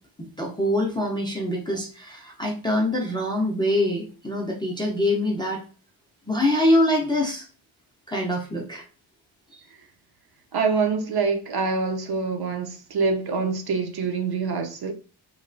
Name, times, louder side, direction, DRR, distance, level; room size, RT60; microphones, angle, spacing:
voice 1, 0.2-5.6 6.2-7.5 8.1-8.8 9.5-9.6, left 1 dB, 10° left, 0.4 m, -24 dB
voice 2, 10.5-14.9, right 4 dB, 55° right, 0.5 m, -25 dB
3.1 x 2.2 x 2.5 m
wide cardioid pair, 155°, 48 cm